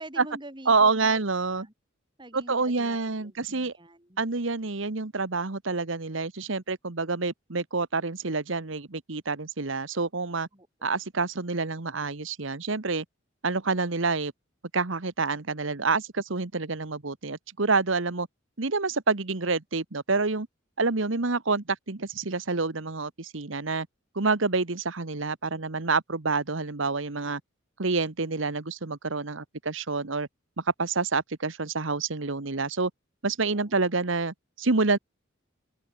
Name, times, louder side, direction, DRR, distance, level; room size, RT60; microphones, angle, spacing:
voice 1, 0.0-1.7 2.2-4.2 10.5-11.0 33.5-33.7, right 1 dB, 25° right, 5.9 m, -46 dB
voice 2, 0.7-1.7 2.3-3.7 4.2-10.5 10.8-13.0 13.4-14.3 14.7-18.3 18.6-20.5 20.8-23.9 24.1-27.4 27.8-30.3 30.8-32.9 33.2-35.0, right 4 dB, 70° right, 1.4 m, -27 dB
open air
head